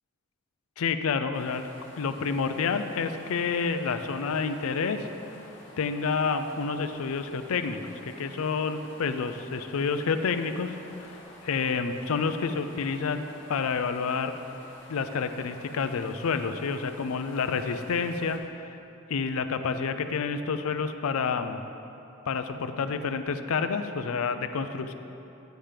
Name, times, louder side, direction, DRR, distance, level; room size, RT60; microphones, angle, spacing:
voice 1, 0.8-1.6 2.0-5.1 5.8-10.7 11.0-11.2 11.4-14.3 14.9-18.4 19.1-21.7 22.3-24.9, left 5 dB, 80° left, 9 dB, 0.4 m, -29 dB
sound 1, 1.3-18.4, left 1 dB, 55° left, 1.4 m, -50 dB
9.0 x 7.3 x 3.4 m, 2.8 s
head